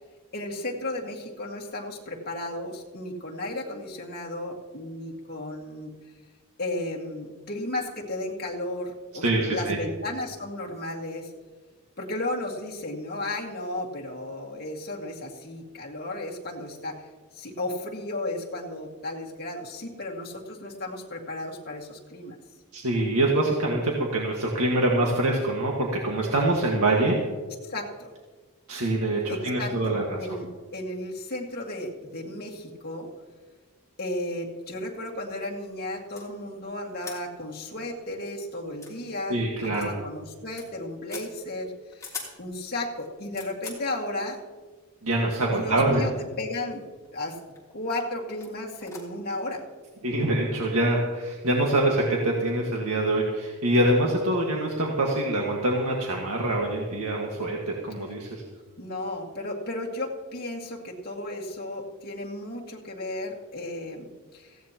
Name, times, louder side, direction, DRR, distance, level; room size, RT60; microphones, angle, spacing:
voice 1, 0.3-5.9 6.6-11.3 12.0-17.0 17.3-22.4 27.6-28.1 29.3-30.5 30.7-33.1 34.0-44.4 45.6-46.1 46.4-46.8 47.1-47.4 47.7-49.6 58.8-64.6, left 1 dB, 45° left, -1 dB, 2.0 m, -34 dB
voice 2, 9.2-9.8 22.7-27.2 28.7-30.4 39.3-39.9 45.0-46.0 50.0-58.4, right 1 dB, 85° right, -1 dB, 1.7 m, -25 dB
sound 1, 36.1-36.3 37.0-37.2 37.6-37.7 38.0-38.1 38.7-38.9 39.7-39.9 40.2-40.7 41.1-41.3 41.9-42.3 43.0-43.8 44.8-44.9 45.8-46.3 46.6-47.1 47.6-47.8 48.4-48.5 48.8-49.0, left 4 dB, 15° left, 3.2 m, -41 dB
18.5 x 15.5 x 3.0 m, 1.4 s
head